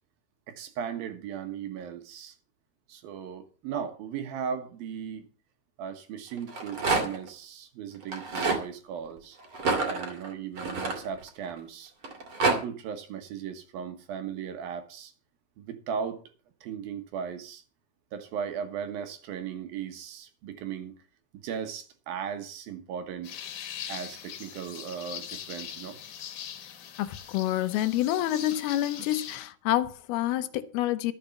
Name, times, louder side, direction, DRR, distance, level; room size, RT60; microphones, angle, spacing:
voice 1, 0.5-2.4 2.9-5.3 5.8-9.4 9.9-11.9 12.4-15.1 15.6-16.2 16.6-17.6 18.1-20.9 21.4-23.4 23.9-26.0, right 7 dB, 70° right, 3.0 m, -37 dB
Rattle, 6.4-7.3 8.0-8.6 9.5-11.5 12.0-12.6, right 3 dB, 40° right, 2.8 m, -28 dB
sound 1, 23.2-29.4, left 9 dB, 60° left, 2.7 m, -41 dB
voice 2, 27.0-31.1, left 13 dB, 80° left, 2.7 m, -28 dB
13.0 x 7.0 x 7.1 m
omnidirectional pair, 4.5 m